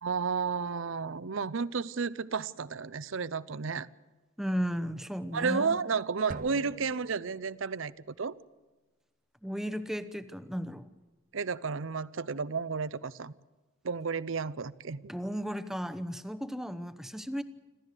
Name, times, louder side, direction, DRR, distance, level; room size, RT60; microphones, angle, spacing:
voice 1, 0.0-3.9 5.3-8.3 11.3-13.3 13.8-15.1, right 5 dB, 65° right, 18 dB, 0.6 m, -32 dB
voice 2, 4.4-5.8 9.4-10.9 15.1-17.4, equal, ahead, 11 dB, 0.8 m, -35 dB
sound 1, 6.3-8.0, right 2 dB, 40° right, 0.9 m, -45 dB
26.0 x 15.0 x 6.7 m, 1.3 s
head